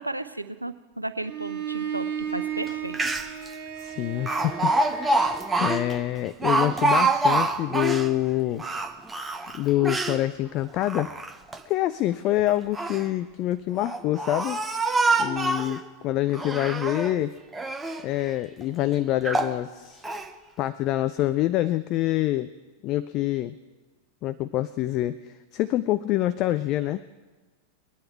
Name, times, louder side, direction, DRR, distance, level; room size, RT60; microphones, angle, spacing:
voice 1, 0.0-3.0, right 2 dB, 85° right, 12 dB, 0.6 m, -34 dB
Bowed string instrument, 1.2-5.6, right 9 dB, 45° right, 1.8 m, -34 dB
Speech, 2.7-2.8 2.9-3.5 4.3-8.1 8.6-10.2 10.8-11.6 12.5-13.1 13.8-15.8 16.3-17.2 17.5-18.1 18.6-18.7 19.2-19.6 20.0-20.3, right 2 dB, 10° right, 0.8 m, -26 dB
voice 2, 3.8-8.6 9.5-11.1 11.7-14.6 15.2-17.4 18.0-20.0 20.6-22.5 22.8-23.6 24.2-27.0, left 14 dB, 40° left, 14 dB, 0.4 m, -26 dB
22.5 x 9.7 x 4.6 m, 1.2 s
figure-of-eight pair, 90°, 0 cm